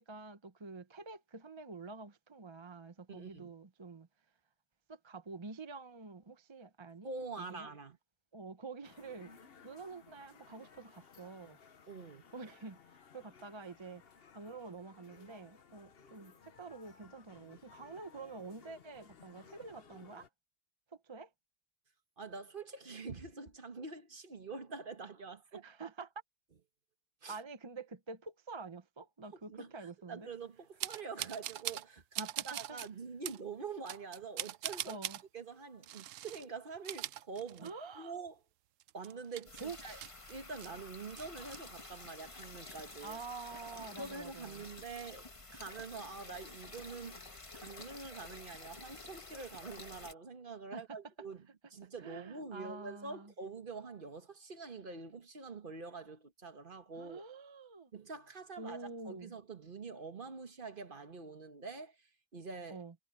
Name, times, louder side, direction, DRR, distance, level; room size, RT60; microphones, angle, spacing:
voice 1, 0.0-4.1 4.9-7.1 7.4-7.7 8.3-11.6 12.3-14.0 14.3-20.3 20.9-21.3 25.5-26.1 27.3-30.3 32.2-32.8 34.8-35.2 37.6-38.2 39.6-39.8 43.0-44.6 50.7-51.0 52.0-53.3 57.0-57.9 58.6-59.3 62.7-62.9, right 4 dB, 25° right, 0.8 m, -48 dB
voice 2, 3.1-3.5 7.0-8.0 11.9-12.2 22.2-25.6 27.2-27.4 29.5-35.0 35.3-38.4 38.9-40.0 40.3-43.2 44.0-47.2 47.5-51.4 51.7-57.2 57.9-62.8, right 4 dB, 45° right, 1.5 m, -46 dB
sound 1, 8.8-20.3, left 6 dB, 50° left, 1.2 m, -60 dB
sound 2, 30.8-31.9 32.1-32.9 33.2-33.4 33.9-35.2 35.8-36.4 36.7-37.9 38.3-38.4 38.8-40.7 41.0-41.6, right 13 dB, 80° right, 1.0 m, -42 dB
sound 3, 39.4-50.1, left 3 dB, 25° left, 1.4 m, -50 dB
omnidirectional pair, 1.3 m